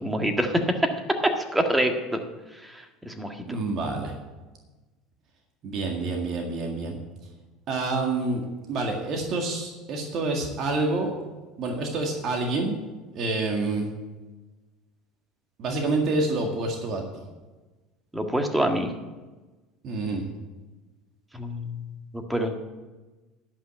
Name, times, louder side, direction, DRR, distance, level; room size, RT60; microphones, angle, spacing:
voice 1, 0.0-0.9 1.2-2.2 2.6-3.6 18.1-18.9 21.3-21.8 22.1-22.6, right 1 dB, 10° right, 5 dB, 1.6 m, -26 dB
voice 2, 3.5-4.1 5.6-7.0 7.7-8.4 8.7-11.1 11.6-12.8 13.1-13.9 15.6-17.2 19.8-20.3, right 3 dB, 50° right, 2 dB, 1.9 m, -27 dB
11.5 x 5.7 x 8.9 m, 1.2 s
hypercardioid pair, 90°, 0 cm